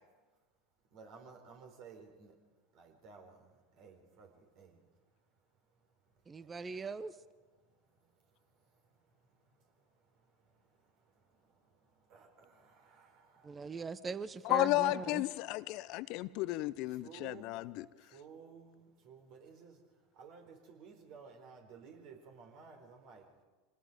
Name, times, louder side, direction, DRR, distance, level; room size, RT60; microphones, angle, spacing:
voice 1, 0.9-2.3 2.7-3.4 3.8-4.8 6.4-6.5 12.1-13.6 16.9-17.8 18.1-19.8 20.2-23.2, right 5 dB, 55° right, 3 dB, 4.5 m, -55 dB
voice 2, 6.3-7.1 13.4-15.2, right 4 dB, 25° right, 15 dB, 1.0 m, -40 dB
voice 3, 14.4-17.9, left 18 dB, 55° left, 17 dB, 0.7 m, -33 dB
26.0 x 19.5 x 5.2 m, 1.3 s
hypercardioid pair, 85°, 0 cm